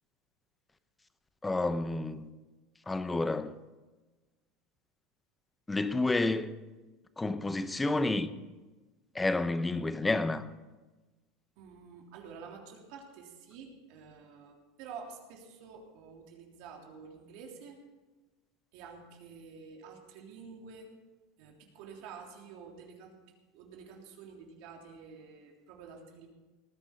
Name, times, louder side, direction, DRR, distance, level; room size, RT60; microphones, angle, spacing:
voice 1, 1.4-2.3 2.9-3.6 5.7-6.5 7.2-8.3 9.1-10.5, left 2 dB, 10° left, 0.8 m, -30 dB
voice 2, 11.6-17.8 18.7-20.9 21.4-23.2 23.5-26.3, right 5 dB, 60° right, 3.3 m, -49 dB
19.0 x 10.5 x 5.3 m
supercardioid pair, 140°, 0 cm